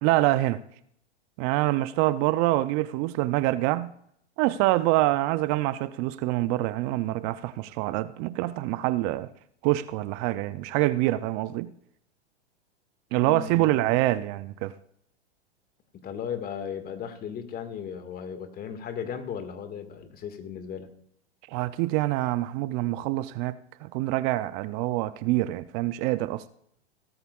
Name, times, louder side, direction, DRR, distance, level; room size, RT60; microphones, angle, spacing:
voice 1, 0.0-0.6 1.4-3.9 4.4-9.3 9.6-11.7 13.1-14.7 21.5-26.4, right 17 dB, 30° right, 0.4 m, -26 dB
voice 2, 13.2-14.0 15.9-20.9, left 7 dB, 25° left, 1.7 m, -36 dB
17.5 x 13.5 x 2.3 m
hypercardioid pair, 110°, 35 cm